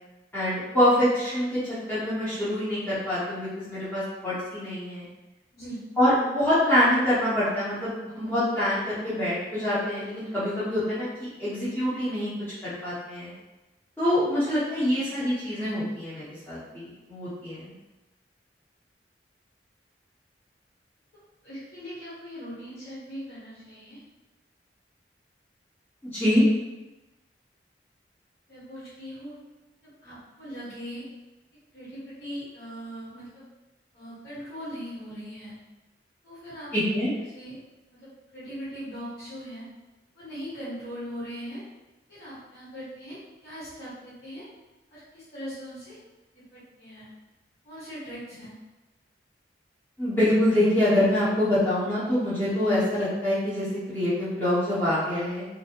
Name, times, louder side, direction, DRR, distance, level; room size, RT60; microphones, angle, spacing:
voice 1, 0.3-5.1 6.0-12.3 12.6-13.3 14.0-17.7 26.0-26.4 36.7-37.1 50.0-55.5, left 1 dB, 10° left, -13 dB, 0.9 m, -25 dB
voice 2, 21.4-24.0 28.5-29.4 29.8-31.0 31.7-33.4 33.9-35.5 36.2-36.7 37.3-37.6 37.9-39.7 40.1-41.6 42.1-44.4 44.9-46.0 46.3-47.1 47.6-48.5, equal, 60° left, -10 dB, 1.4 m, -40 dB
2.5 x 2.1 x 2.8 m, 1.1 s
head